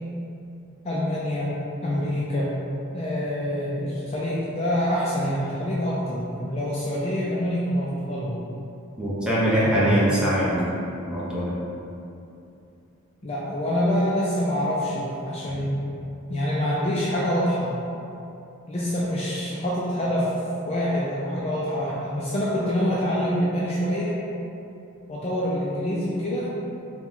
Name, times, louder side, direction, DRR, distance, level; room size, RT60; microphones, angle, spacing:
voice 1, 0.8-2.6 2.9-8.4 9.4-10.1 13.2-15.8 16.3-17.7 18.7-20.3 20.7-24.2 25.1-26.5, equal, 30° left, -6 dB, 0.4 m, -26 dB
voice 2, 9.0-10.7 11.1-11.6, equal, 5° right, -9 dB, 0.8 m, -22 dB
4.4 x 2.3 x 3.6 m, 2.7 s
head